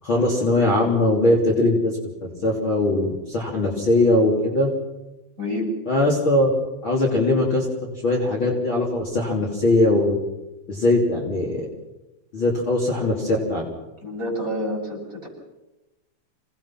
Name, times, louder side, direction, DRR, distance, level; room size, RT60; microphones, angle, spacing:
voice 1, 0.0-4.7 5.9-6.5 6.8-7.7 8.0-10.2 10.7-11.7 12.3-13.6, left 2 dB, 35° left, -2 dB, 3.7 m, -20 dB
voice 2, 5.4-5.7 14.0-15.3, left 1 dB, 20° right, -2 dB, 7.0 m, -28 dB
28.0 x 19.5 x 6.0 m, 1.0 s
omnidirectional pair, 4.2 m